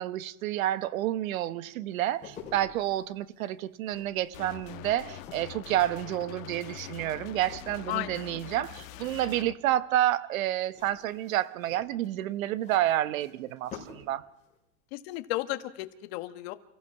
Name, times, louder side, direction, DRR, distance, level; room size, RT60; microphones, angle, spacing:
voice 1, 0.0-14.2, right 13 dB, 85° right, 1.1 m, -29 dB
sound 1, 1.9-8.4 8.7-9.3 10.6-14.1 14.4-14.6, left 5 dB, 15° left, 4.7 m, -50 dB
sound 2, 4.3-9.5, left 15 dB, 75° left, 1.3 m, -44 dB
voice 2, 7.9-8.2 14.9-16.5, left 17 dB, 50° left, 1.3 m, -34 dB
29.0 x 15.5 x 5.9 m
supercardioid pair, 175°, 40 cm